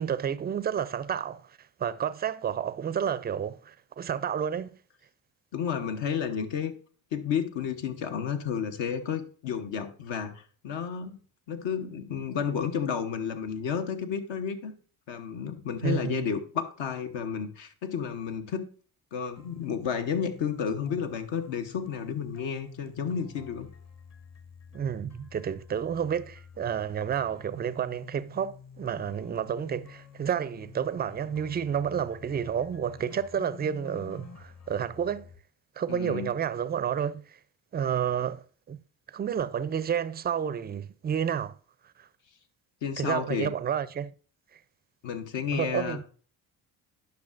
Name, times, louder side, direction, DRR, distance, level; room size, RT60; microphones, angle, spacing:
voice 1, 0.0-4.8 15.8-16.2 24.7-35.3 35.8-37.4 37.7-38.8 39.1-41.6 42.0-42.1 43.0-44.1 45.5-46.0, right 8 dB, 20° right, 0.4 m, -30 dB
voice 2, 5.5-6.7 7.1-11.2 11.5-14.7 15.1-18.7 19.1-23.7 35.9-36.3 42.8-43.5 45.0-46.0, left 7 dB, 65° left, 1.0 m, -31 dB
sound 1, 19.4-35.4, left 5 dB, 35° left, 1.0 m, -50 dB
10.5 x 5.7 x 2.5 m
supercardioid pair, 60°, 48 cm